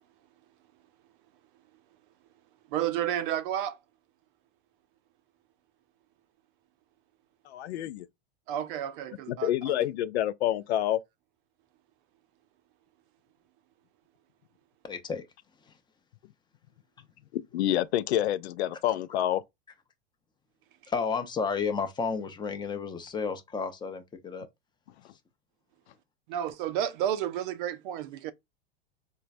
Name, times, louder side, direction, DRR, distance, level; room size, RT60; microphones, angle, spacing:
voice 1, 2.7-3.8 8.5-9.7 26.3-28.3, right 10 dB, 55° right, 0.5 m, -31 dB
voice 2, 7.5-8.1 9.3-11.0 17.5-19.4, left 12 dB, 80° left, 0.5 m, -27 dB
voice 3, 14.8-15.2 15.6-15.7 20.9-24.5, left 5 dB, 15° left, 0.6 m, -32 dB
4.5 x 2.2 x 2.5 m
hypercardioid pair, 115°, 32 cm